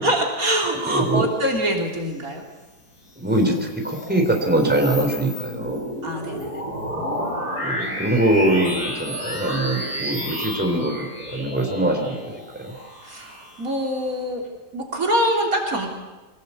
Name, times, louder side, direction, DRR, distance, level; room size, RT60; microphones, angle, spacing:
voice 1, 0.0-2.4 6.0-6.6 13.0-14.4 14.7-15.9, right 1 dB, 55° right, 1 dB, 3.7 m, -24 dB
voice 2, 0.9-1.3 3.2-5.9 7.6-12.7, right 1 dB, 5° right, 2 dB, 3.6 m, -23 dB
sound 1, 3.1-14.0, equal, 80° left, 6.7 m, -31 dB
26.5 x 18.5 x 8.4 m, 1.2 s
omnidirectional pair, 1.7 m